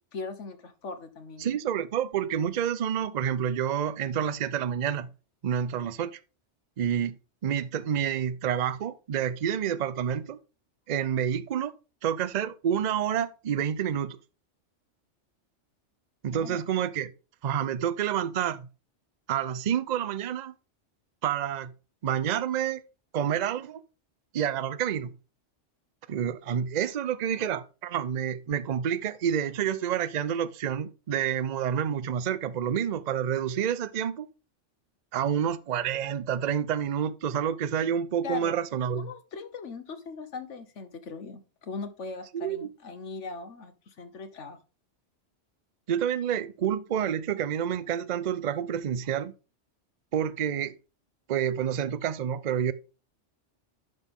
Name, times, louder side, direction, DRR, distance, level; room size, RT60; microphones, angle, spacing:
voice 1, 0.1-1.6 16.3-16.6 38.2-38.6 39.0-44.6, left 4 dB, 80° left, 1.5 m, -39 dB
voice 2, 1.4-5.1 5.4-6.1 6.8-7.1 7.4-10.4 10.9-11.7 12.0-14.2 16.2-17.1 17.4-18.7 19.3-20.5 21.2-21.7 22.0-22.8 23.1-23.8 24.3-25.1 26.1-34.3 35.1-39.1 42.3-42.7 45.9-49.3 50.1-50.7 51.3-52.7, right 9 dB, 45° right, 0.6 m, -28 dB
10.5 x 6.0 x 3.7 m
omnidirectional pair, 1.2 m